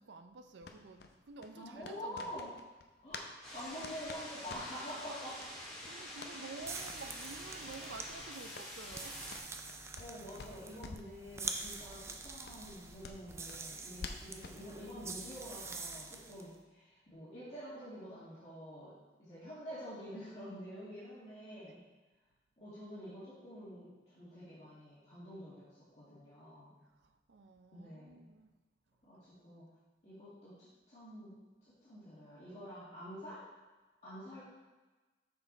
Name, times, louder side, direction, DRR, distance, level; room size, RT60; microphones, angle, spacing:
voice 1, 0.0-2.5 5.8-9.6 21.6-21.8 27.0-28.5, right 3 dB, 75° right, 8 dB, 0.5 m, -51 dB
sound 1, 0.6-3.3 3.6-5.0 5.4-5.5 5.8-6.3 6.7-6.9 7.2-7.3 7.6-7.8 8.1-10.1 10.4-11.1 11.4-11.6 11.9-12.0 12.4-14.6, left 4 dB, 60° left, 0.5 m, -49 dB
voice 2, 1.6-2.5 3.0-5.4 10.0-18.9 19.2-21.8 22.6-25.7 26.0-26.7 27.7-28.3 29.0-29.2 29.4-29.6 30.0-31.4 31.8-33.4 34.0-34.4, equal, 35° left, -12 dB, 2.1 m, -47 dB
sound 2, 3.4-9.4, left 1 dB, 5° left, 1.8 m, -47 dB
sound 3, 6.6-16.5, right 4 dB, 15° right, 0.3 m, -46 dB
6.3 x 5.7 x 4.1 m, 1.2 s
head